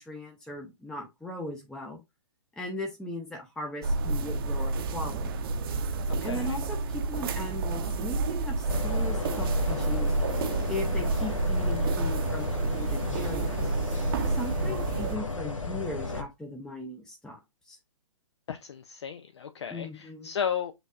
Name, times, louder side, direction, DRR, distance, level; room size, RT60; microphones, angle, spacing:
voice 1, 0.0-2.0 2.6-5.4 6.2-10.1 10.7-13.6 14.2-17.8 19.7-20.3, left 1 dB, 5° left, 0.6 m, -38 dB
sound 1, 3.8-15.2, right 3 dB, 45° right, 0.8 m, -29 dB
voice 2, 6.2-6.6 18.5-20.7, left 8 dB, 60° left, 0.5 m, -34 dB
sound 2, 8.7-16.2, left 3 dB, 80° left, 1.0 m, -34 dB
7.8 x 2.7 x 2.4 m
figure-of-eight pair, 120°, 16 cm